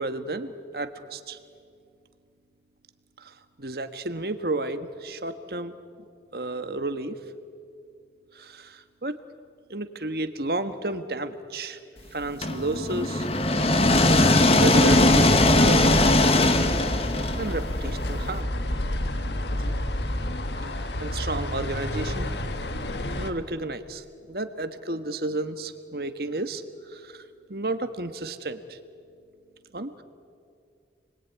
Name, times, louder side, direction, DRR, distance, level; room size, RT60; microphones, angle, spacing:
voice 1, 0.0-1.4 3.2-5.8 6.3-7.2 8.3-9.2 9.7-11.8 12.1-13.3 14.6-15.3 15.6-16.3 16.9-17.0 17.4-18.5 19.7-19.8 20.6-22.4 23.2-28.8 29.7-30.0, right 2 dB, 55° right, 9 dB, 1.5 m, -32 dB
sound 1, 12.4-18.3, left 2 dB, 35° left, 1.4 m, -20 dB
sound 2, 14.9-23.3, left 1 dB, 70° left, 1.7 m, -30 dB
29.5 x 21.5 x 9.5 m, 2.3 s
head